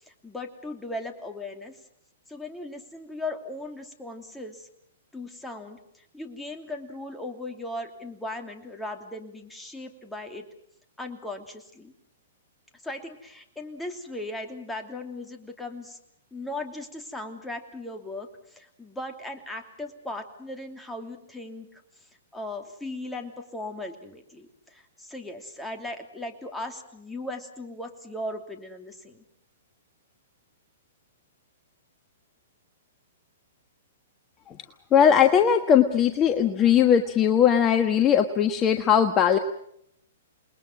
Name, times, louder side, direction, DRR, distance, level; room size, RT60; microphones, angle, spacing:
voice 1, 0.2-1.8 2.3-4.7 5.1-5.8 6.1-10.5 11.0-11.9 12.8-16.0 16.3-18.3 18.5-21.7 22.3-29.2, left 2 dB, 5° left, 4 dB, 3.0 m, -37 dB
voice 2, 34.9-39.4, left 8 dB, 25° left, 7 dB, 1.4 m, -19 dB
28.5 x 21.0 x 6.2 m, 0.73 s
hypercardioid pair, 120°, 0 cm